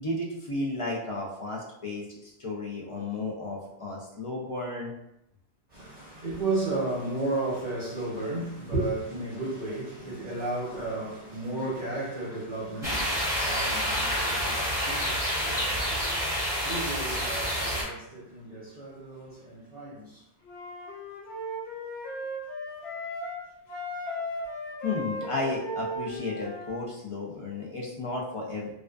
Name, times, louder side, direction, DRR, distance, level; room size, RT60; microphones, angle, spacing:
voice 1, 0.0-4.9 24.8-28.7, left 2 dB, 50° left, 0.4 m, -33 dB
voice 2, 5.7-20.2, right 2 dB, 45° right, 0.7 m, -34 dB
sound 1, 12.8-17.8, equal, 5° right, 0.8 m, -28 dB
Wind instrument woodwind instrument, 20.5-23.4 23.7-26.8, equal, 75° left, 1.0 m, -36 dB
2.4 x 2.3 x 2.2 m
omnidirectional pair, 1.1 m